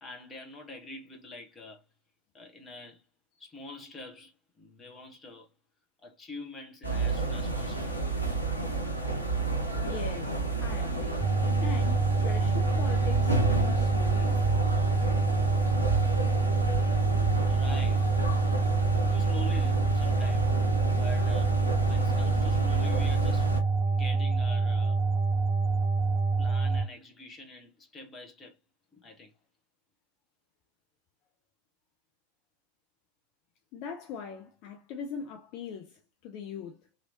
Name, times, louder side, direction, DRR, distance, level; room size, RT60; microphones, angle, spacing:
voice 1, 0.0-1.8 2.3-3.0 3.4-5.5 6.0-8.0 17.5-18.2 19.1-20.5 21.0-21.6 21.9-23.6 23.9-25.0 26.4-28.6 28.9-29.3, left 2 dB, 20° left, 1.0 m, -45 dB
sound 1, 6.8-23.6, right 3 dB, 85° left, 0.9 m, -31 dB
voice 2, 9.8-14.4 33.7-36.8, left 6 dB, 40° left, 0.5 m, -41 dB
sound 2, 11.2-26.8, right 4 dB, 30° right, 0.5 m, -26 dB
3.0 x 2.7 x 2.7 m
figure-of-eight pair, 90°, 0 cm